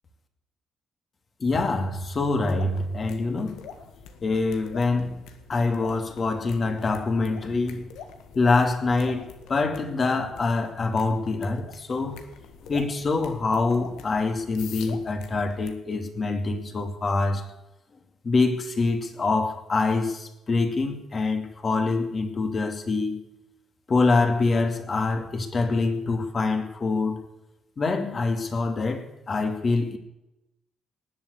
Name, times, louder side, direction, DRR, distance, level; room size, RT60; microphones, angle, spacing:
voice 1, 1.4-3.7 4.2-5.2 5.5-7.8 8.3-12.2 12.7-17.5 18.2-23.2 23.9-27.2 27.8-30.0, left 3 dB, 40° left, 2.6 m, -25 dB
sound 1, 2.0-15.7, left 6 dB, 90° left, 1.7 m, -46 dB
19.0 x 7.7 x 8.3 m
cardioid pair, 90°, 0 cm